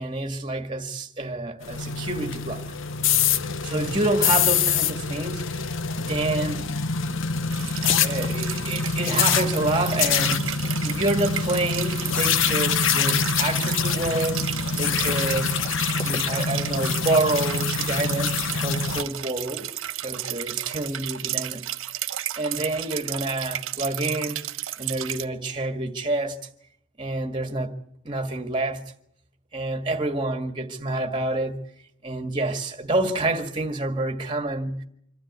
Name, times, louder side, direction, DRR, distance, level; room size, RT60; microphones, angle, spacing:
voice 1, 0.0-2.6 3.6-6.6 8.0-15.6 16.0-19.7 20.0-21.6 22.4-24.4 24.8-26.4 27.0-27.7 28.0-28.8 29.5-31.6 32.0-34.8, right 2 dB, 25° right, 1.8 m, -28 dB
sound 1, 1.6-19.0, left 6 dB, 65° left, 0.9 m, -25 dB
sound 2, 7.5-25.2, right 12 dB, 75° right, 1.0 m, -33 dB
sound 3, 7.6-8.7 9.0-13.4 13.8-20.4, left 1 dB, 25° left, 2.3 m, -46 dB
26.0 x 12.5 x 9.5 m
head